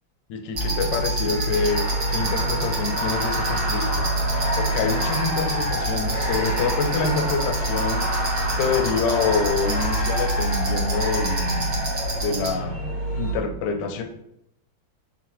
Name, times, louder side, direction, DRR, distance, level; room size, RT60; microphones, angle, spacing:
voice 1, 0.3-4.1 4.4-11.9 12.2-14.0, left 4 dB, 75° left, 5 dB, 1.2 m, -27 dB
sound 1, 0.5-13.3, right 1 dB, 35° left, 1.1 m, -26 dB
sound 2, 0.5-12.5, right 1 dB, 55° right, 1.4 m, -31 dB
4.5 x 3.0 x 2.9 m, 0.77 s
omnidirectional pair, 2.1 m